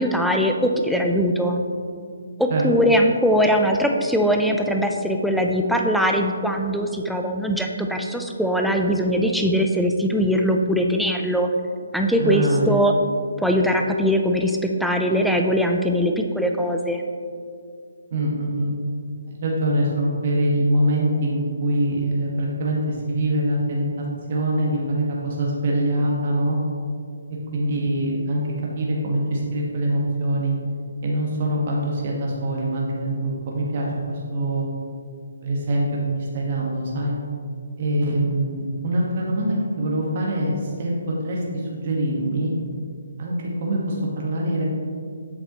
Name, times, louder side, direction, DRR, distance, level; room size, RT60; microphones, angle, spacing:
voice 1, 0.0-1.6 2.4-11.5 11.9-12.9 13.4-17.0, equal, ahead, 2 dB, 0.5 m, -21 dB
voice 2, 12.2-12.8 18.1-19.0 19.3-26.6 27.5-28.4 28.7-30.5 31.0-34.7 35.4-37.1 37.8-42.5 43.2-43.3 43.6-44.6, right 1 dB, 45° right, -3 dB, 1.4 m, -24 dB
8.5 x 6.8 x 3.0 m, 2.3 s
figure-of-eight pair, 145°, 0 cm